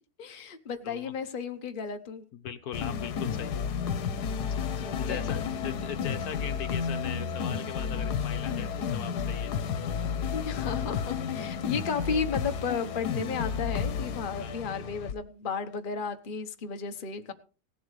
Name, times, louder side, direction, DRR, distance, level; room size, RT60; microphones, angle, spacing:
voice 1, 0.2-2.2 4.8-5.4 10.3-17.3, left 6 dB, 35° left, 7 dB, 1.1 m, -34 dB
voice 2, 2.3-3.7 4.4-9.5 14.4-14.7, left 8 dB, 70° left, 10 dB, 1.4 m, -40 dB
sound 1, 2.7-15.1, left 6 dB, 90° left, 1.4 m, -32 dB
17.5 x 11.5 x 3.2 m, 0.35 s
omnidirectional pair, 1.7 m